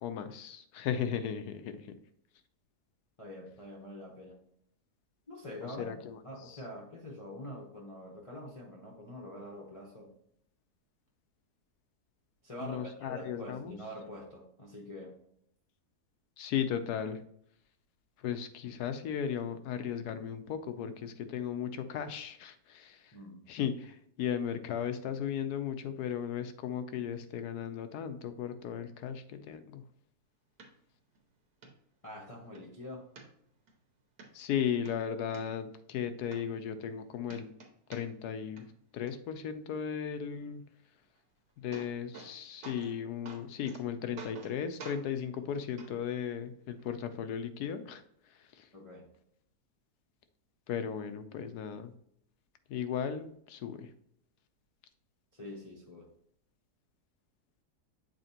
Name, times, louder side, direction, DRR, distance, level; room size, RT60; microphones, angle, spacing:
voice 1, 0.0-1.8 5.8-6.2 12.6-13.8 16.4-17.2 18.2-23.0 23.5-29.8 34.3-37.5 37.9-38.7 38.9-40.6 41.6-48.0 50.7-51.9 52.7-53.9, left 8 dB, 75° left, 9 dB, 1.2 m, -36 dB
voice 2, 3.2-4.4 5.3-10.1 12.4-15.1 23.1-23.5 32.0-33.1 48.7-49.1 55.3-56.1, left 1 dB, 25° left, -3 dB, 0.8 m, -45 dB
sound 1, 30.6-30.7 31.2-31.3 31.6-31.7 32.2-32.6 33.2-33.7 34.2-34.3 34.7-35.4 36.0-36.1 36.3-37.0 37.3-38.3 38.6-39.1 41.2-41.3 41.5-42.3 42.6-43.0 43.3-43.8 44.2-44.5 44.8-45.0 45.8-45.9 46.8-46.9, right 4 dB, 75° right, 1.6 m, -49 dB
7.8 x 4.2 x 2.8 m, 0.70 s
omnidirectional pair, 1.7 m